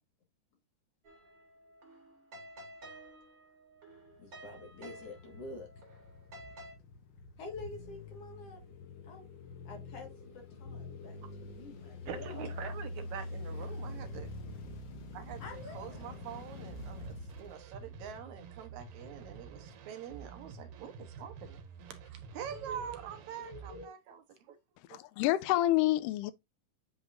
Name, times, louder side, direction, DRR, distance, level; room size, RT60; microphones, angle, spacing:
sound 1, 1.0-6.7, right 1 dB, 35° right, 2.8 m, -53 dB
sound 2, 3.9-18.3, left 2 dB, 65° left, 1.1 m, -46 dB
voice 1, 4.2-5.7 7.4-8.6 9.0-9.3 9.6-11.2 11.4-12.6 15.4-16.2 23.4-23.9, left 2 dB, 50° left, 2.5 m, -47 dB
voice 2, 12.1-14.3 15.1-15.4 15.7-21.6 21.9-24.6 24.9-25.0, right 8 dB, 65° right, 2.2 m, -45 dB
sound 3, 15.3-23.9, right 5 dB, 85° right, 2.6 m, -50 dB
voice 3, 24.9-26.3, left 15 dB, 80° left, 2.1 m, -28 dB
8.3 x 5.2 x 2.6 m
omnidirectional pair, 3.9 m